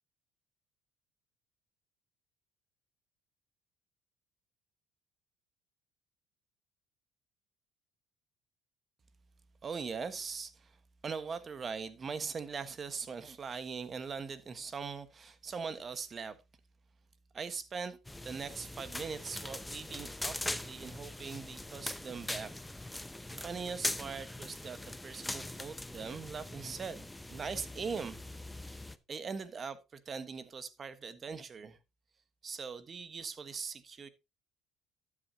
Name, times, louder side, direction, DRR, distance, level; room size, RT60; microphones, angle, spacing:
voice 1, 9.6-10.7 11.0-16.4 17.3-18.0 18.2-22.5 23.3-28.2 28.6-31.8 32.4-34.1, right 5 dB, 35° right, 1.3 m, -41 dB
sound 1, 18.1-29.0, left 1 dB, 10° left, 0.7 m, -41 dB
12.5 x 8.6 x 2.8 m
supercardioid pair, 100°, 0 cm